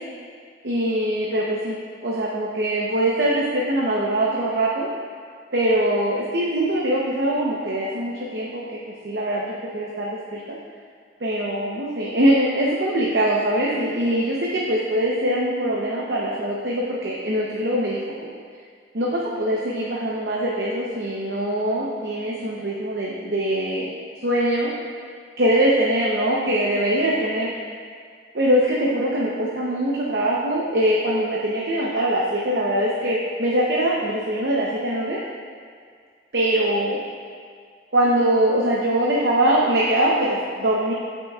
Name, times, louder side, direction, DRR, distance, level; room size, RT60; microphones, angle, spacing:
voice 1, 0.6-1.7 2.0-4.9 5.5-10.6 11.2-18.3 18.9-23.9 24.2-24.7 25.4-27.5 28.3-35.2 36.3-37.0 37.9-40.9, right 1 dB, 70° right, -4 dB, 0.9 m, -22 dB
16.5 x 5.9 x 2.4 m, 2.1 s
head